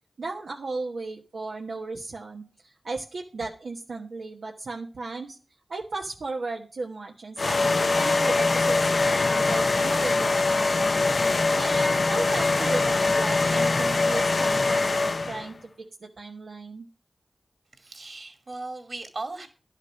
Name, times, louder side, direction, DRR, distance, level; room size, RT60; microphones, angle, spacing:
voice 1, 0.2-5.4 5.7-11.1 11.5-15.7 16.0-16.9, right 3 dB, 85° right, -1 dB, 1.3 m, -35 dB
sound 1, 7.4-15.5, left 3 dB, 65° left, 0.5 m, -23 dB
voice 2, 17.8-19.5, right 2 dB, 60° right, 8 dB, 2.6 m, -37 dB
11.0 x 6.5 x 6.3 m, 0.35 s
cardioid pair, 45°, 0 cm